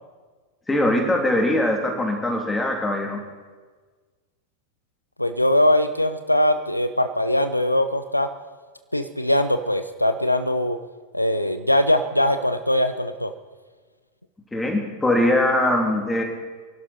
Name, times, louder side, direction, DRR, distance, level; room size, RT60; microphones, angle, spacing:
voice 1, 0.7-3.2 14.5-16.2, left 1 dB, 10° left, 1 dB, 3.0 m, -21 dB
voice 2, 5.2-8.3 8.9-10.8 11.1-13.3, left 1 dB, 85° left, 10 dB, 0.7 m, -21 dB
24.5 x 12.0 x 4.3 m, 1.4 s
figure-of-eight pair, 90°, 0 cm